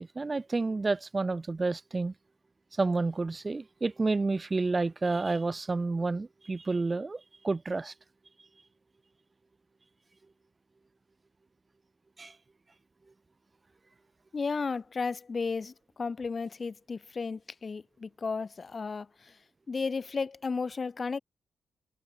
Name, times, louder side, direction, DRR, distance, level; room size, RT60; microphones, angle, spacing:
voice 1, 0.0-2.1 2.8-7.9 12.2-12.3, right 3 dB, 25° right, 2.8 m, -30 dB
voice 2, 14.3-19.4 19.7-21.2, left 4 dB, 35° left, 2.8 m, -34 dB
cardioid pair, 115°, 0 cm